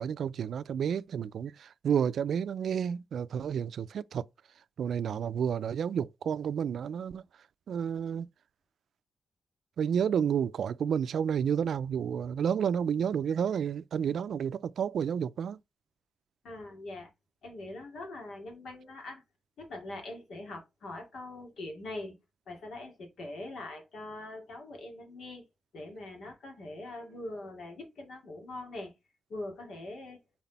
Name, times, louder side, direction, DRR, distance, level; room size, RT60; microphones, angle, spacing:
voice 1, 0.0-4.3 4.8-7.2 7.7-8.3 9.8-15.6, right 8 dB, 80° right, 0.3 m, -30 dB
voice 2, 16.4-17.1 17.4-19.2 19.6-22.2 22.5-25.4 25.7-28.9 29.3-30.2, left 2 dB, 85° left, 2.3 m, -42 dB
6.0 x 4.1 x 4.1 m
wide cardioid pair, 140°, 0 cm